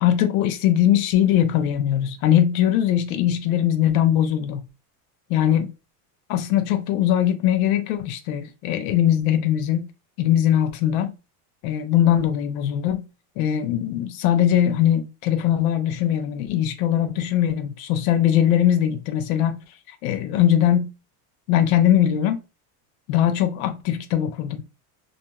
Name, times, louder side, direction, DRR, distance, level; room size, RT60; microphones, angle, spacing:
voice 1, 0.0-4.6 5.3-5.7 6.3-9.9 10.2-11.1 11.6-13.1 13.4-19.6 20.0-20.9 21.5-22.4 23.1-24.6, left 11 dB, 65° left, 0.5 m, -21 dB
2.5 x 2.1 x 2.7 m
cardioid pair, 165°, 46 cm